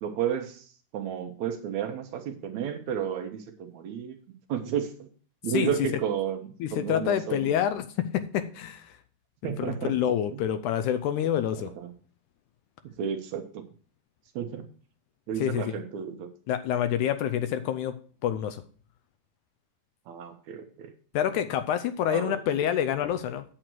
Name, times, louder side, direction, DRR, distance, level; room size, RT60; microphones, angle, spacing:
voice 1, 0.0-0.7 0.9-4.2 4.5-5.1 5.4-7.5 9.4-9.9 10.3-10.4 11.6-11.9 12.8-13.6 14.4-14.7 15.3-16.3 20.1-20.9 22.1-22.4, right 8 dB, 70° right, 6 dB, 2.0 m, -32 dB
voice 2, 6.6-9.0 9.4-11.7 15.4-15.8 16.5-18.0 18.2-18.6 21.1-23.4, left 10 dB, 80° left, 11 dB, 1.9 m, -27 dB
9.0 x 7.6 x 4.5 m, 0.42 s
omnidirectional pair, 3.8 m